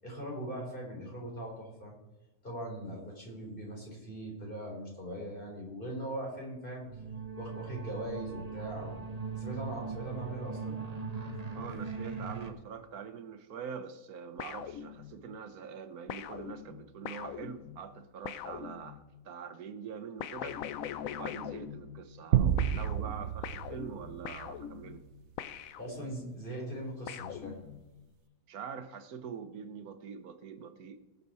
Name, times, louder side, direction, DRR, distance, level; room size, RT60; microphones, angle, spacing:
voice 1, 0.0-2.0 2.4-6.9 7.4-9.0 9.4-10.9 25.8-27.6, right 1 dB, 35° left, -1 dB, 3.8 m, -40 dB
sound 1, 6.8-12.5, right 5 dB, 30° right, 1.0 m, -40 dB
voice 2, 11.5-20.7 21.1-25.0 28.5-31.2, right 7 dB, 90° right, 10 dB, 1.5 m, -44 dB
sound 2, 14.4-15.4 16.1-19.2 20.2-22.3 22.6-26.3 27.1-28.1, left 9 dB, 70° left, 1.0 m, -43 dB
sound 3, 22.3-24.9, right 10 dB, 60° right, 0.8 m, -30 dB
19.5 x 6.8 x 4.2 m, 1.1 s
omnidirectional pair, 1.5 m